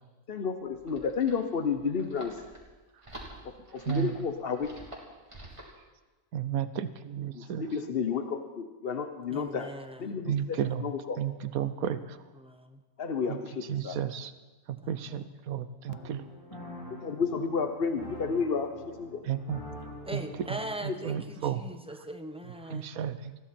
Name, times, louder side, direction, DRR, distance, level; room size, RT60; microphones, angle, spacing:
voice 1, 0.3-2.4 3.7-4.7 7.3-9.7 10.0-11.2 13.0-14.0 15.9-16.0 17.0-18.7 19.0-19.2, left 5 dB, 45° left, 7 dB, 1.0 m, -31 dB
sound 1, 0.6-5.8, right 1 dB, 20° right, 3.1 m, -48 dB
voice 2, 6.3-7.6 10.3-10.8 11.2-12.2 13.3-13.4 13.7-14.3 14.7-16.2 19.2-19.6 20.1-20.2 20.5-21.6 22.7-23.4, right 9 dB, 75° right, 12 dB, 1.2 m, -33 dB
voice 3, 9.3-10.0 10.5-10.7 12.3-12.8 14.8-15.4 20.0-22.9, right 1 dB, 5° right, 6 dB, 0.8 m, -41 dB
sound 2, 15.9-21.5, left 1 dB, 20° left, 4.5 m, -46 dB
20.5 x 15.0 x 4.4 m, 1.2 s
omnidirectional pair, 1.6 m